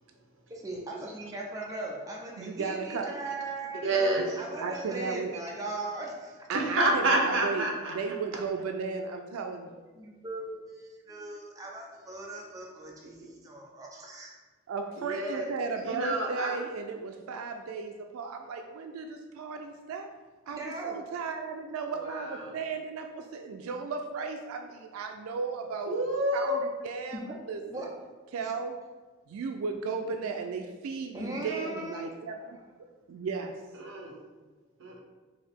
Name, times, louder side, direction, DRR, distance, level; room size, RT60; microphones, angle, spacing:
voice 1, 0.5-4.1 4.4-6.4 10.0-14.3 20.5-21.0 27.1-27.3 27.6-27.9 31.1-32.1 32.4-32.5, right 2 dB, 15° right, -2 dB, 0.5 m, -39 dB
voice 2, 2.4-3.1 4.6-5.3 6.5-7.7 7.9-9.7 14.7-20.1 20.5-25.9 26.3-27.2 27.5-27.9 28.3-28.8 29.3-32.6 33.1-33.5, right 4 dB, 85° right, 5 dB, 0.3 m, -35 dB
voice 3, 3.8-4.4 4.7-4.8 6.5-7.9 15.0-15.5 15.8-16.6 21.9-22.5 25.9-26.5 33.8-34.1 34.8-35.0, right 1 dB, 65° right, 1 dB, 0.8 m, -28 dB
4.5 x 2.7 x 3.5 m, 1.3 s
head